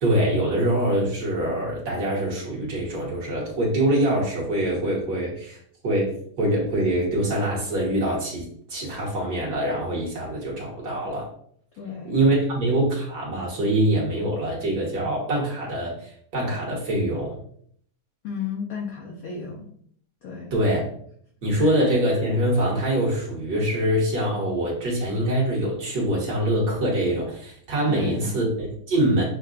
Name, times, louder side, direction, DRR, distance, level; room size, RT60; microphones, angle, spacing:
voice 1, 0.0-11.3 12.1-17.4 20.5-20.9 21.4-29.2, right 1 dB, 60° right, -4 dB, 1.7 m, -24 dB
voice 2, 11.8-12.2 18.2-19.7 20.2-20.6 21.6-21.7 27.9-28.4, left 6 dB, 75° left, -1 dB, 0.8 m, -33 dB
6.5 x 2.2 x 2.4 m, 0.62 s
omnidirectional pair, 2.2 m